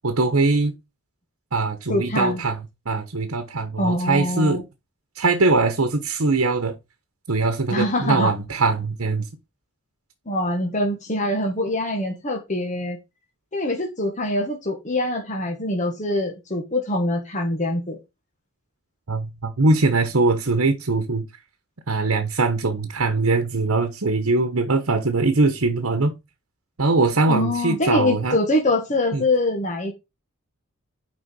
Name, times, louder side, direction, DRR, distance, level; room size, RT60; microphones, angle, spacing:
voice 1, 0.0-0.7 1.5-2.6 2.9-4.6 5.1-6.8 7.3-9.3 19.1-21.2 21.9-26.1 26.8-28.4 29.1-29.2, right 3 dB, 80° right, 1.1 m, -21 dB
voice 2, 1.9-2.4 3.8-4.6 7.7-8.3 10.2-13.0 13.5-18.0 27.3-29.9, left 1 dB, 35° left, 1.6 m, -24 dB
6.5 x 5.1 x 5.3 m
head